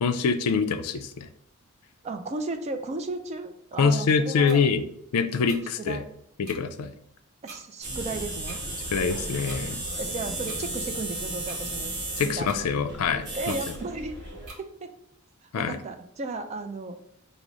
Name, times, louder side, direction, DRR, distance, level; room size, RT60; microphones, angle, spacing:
voice 1, 0.0-1.3 3.8-4.9 5.1-6.0 6.4-6.9 8.9-9.8 12.2-13.2 15.5-15.8, left 5 dB, 85° left, 9 dB, 0.4 m, -24 dB
voice 2, 2.0-4.7 5.8-6.1 7.4-8.6 9.9-11.9 12.2-12.5 13.3-14.2 14.6-14.9 15.5-17.0, right 3 dB, 30° right, 7 dB, 0.3 m, -34 dB
sound 1, 4.5-4.6 5.5-5.6 6.5-6.6 7.5-7.6 8.5-8.6 9.5-9.6 10.5-10.6 11.5-11.6 12.5-12.6 13.5-13.6 14.5-14.6, right 3 dB, 70° right, 1.0 m, -43 dB
sound 2, 7.8-14.5, right 2 dB, 50° right, 1.4 m, -34 dB
4.7 x 2.0 x 3.8 m, 0.71 s
head